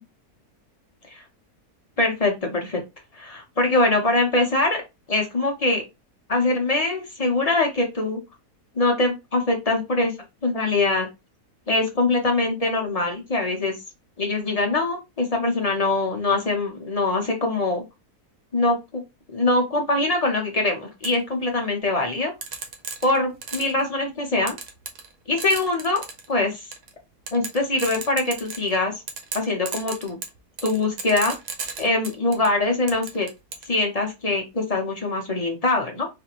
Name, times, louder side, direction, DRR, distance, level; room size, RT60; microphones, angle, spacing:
voice 1, 2.0-2.8 3.2-4.8 5.1-5.8 6.3-8.2 8.8-10.1 10.4-11.1 11.7-13.7 14.2-17.8 18.5-19.0 19.3-22.3 23.0-24.6 25.3-26.7 27.3-29.0 29.3-30.2 30.6-31.3 31.8-33.3 33.7-36.1, left 2 dB, 45° left, 2 dB, 0.5 m, -23 dB
sound 1, 21.0-21.2 22.4-23.8 24.5-25.1 25.4-26.3 26.7-26.9 27.3-28.8 29.1-32.5 32.9-33.7, right 5 dB, 90° right, 1.4 m, -34 dB
4.3 x 2.5 x 2.9 m, 0.24 s
omnidirectional pair, 1.7 m